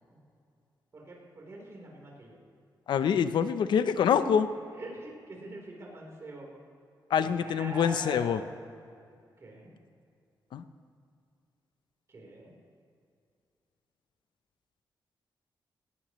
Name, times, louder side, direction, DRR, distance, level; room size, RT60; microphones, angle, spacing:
voice 1, 0.9-2.4 4.2-4.3 4.7-6.5 7.4-8.5 9.4-9.7 12.1-12.5, right 1 dB, 35° right, -1 dB, 3.9 m, -44 dB
voice 2, 2.9-4.5 7.1-8.4 10.5-10.6, left 7 dB, 80° left, 11 dB, 0.7 m, -25 dB
18.5 x 18.0 x 3.2 m, 2.4 s
wide cardioid pair, 150°, 8 cm